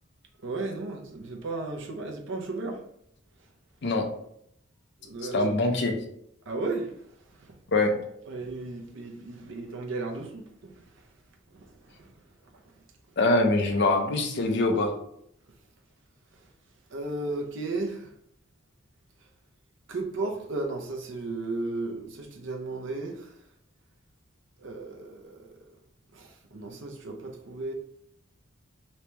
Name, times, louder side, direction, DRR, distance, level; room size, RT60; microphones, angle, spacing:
voice 1, 0.4-2.8 5.0-5.5 6.5-6.9 8.3-10.7 16.9-18.1 19.9-23.3 24.6-25.5 26.1-27.7, right 2 dB, 65° right, 1 dB, 0.7 m, -34 dB
voice 2, 5.3-5.9 7.7-8.0 13.2-14.9, left 2 dB, 55° left, 3 dB, 0.6 m, -23 dB
3.2 x 2.9 x 3.3 m, 0.71 s
head